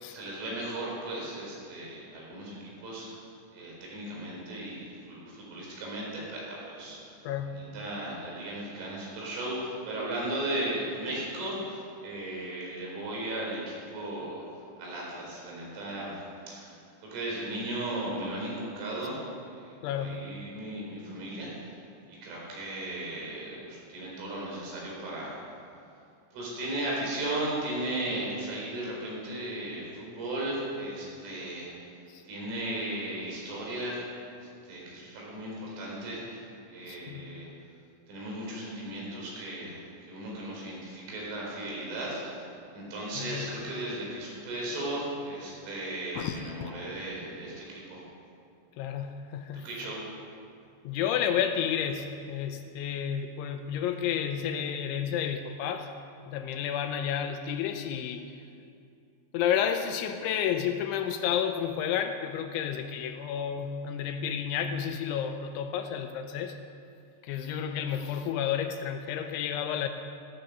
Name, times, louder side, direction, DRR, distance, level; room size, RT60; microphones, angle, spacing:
voice 1, 0.1-3.2 3.5-7.2 7.5-14.4 14.8-16.2 16.5-16.7 17.0-19.2 19.5-21.7 22.1-25.4 26.3-31.7 32.3-34.0 34.3-37.5 38.1-42.4 42.7-48.0 49.6-50.1, right 1 dB, 75° right, -4 dB, 6.9 m, -36 dB
voice 2, 7.2-7.5 19.8-20.2 32.1-32.2 36.9-37.3 43.2-43.5 46.1-46.7 48.8-49.7 50.8-55.9 56.3-58.2 59.3-66.6 67.2-69.9, left 8 dB, 80° left, 6 dB, 2.9 m, -31 dB
15.0 x 14.5 x 6.7 m, 2.5 s
omnidirectional pair, 5.7 m